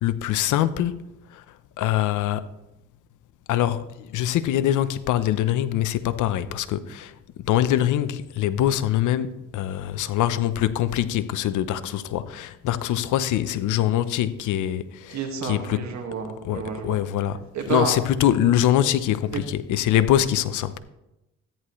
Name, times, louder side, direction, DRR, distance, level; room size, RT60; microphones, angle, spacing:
voice 1, 0.0-1.0 1.3-1.4 1.8-2.5 3.5-7.1 7.4-15.8 16.4-20.8, left 12 dB, 80° left, 0.7 m, -24 dB
voice 2, 15.1-17.0 17.5-18.0 19.3-19.4, right 6 dB, 65° right, 1.8 m, -30 dB
14.0 x 10.0 x 3.1 m
cardioid pair, 90°, 30 cm